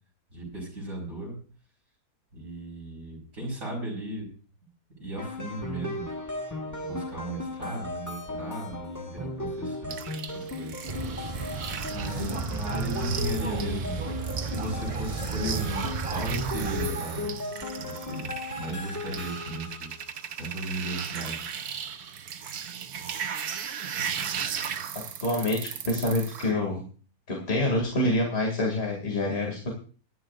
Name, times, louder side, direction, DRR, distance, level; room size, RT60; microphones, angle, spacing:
voice 1, 0.3-1.4 2.3-4.3 5.0-6.1 6.9-10.0 10.3-10.8 11.9-14.0 14.3-20.0 20.4-21.5, right 1 dB, 55° right, -4 dB, 4.8 m, -36 dB
sound 1, 5.2-19.9, left 2 dB, 10° left, 1.5 m, -37 dB
sound 2, 9.9-26.5, right 8 dB, 80° right, 1.5 m, -37 dB
sound 3, 10.9-16.9, right 4 dB, 35° right, 0.6 m, -33 dB
voice 2, 25.2-26.8 27.3-29.7, left 1 dB, 40° left, -1 dB, 2.7 m, -27 dB
22.0 x 10.5 x 2.5 m, 0.39 s
omnidirectional pair, 1.6 m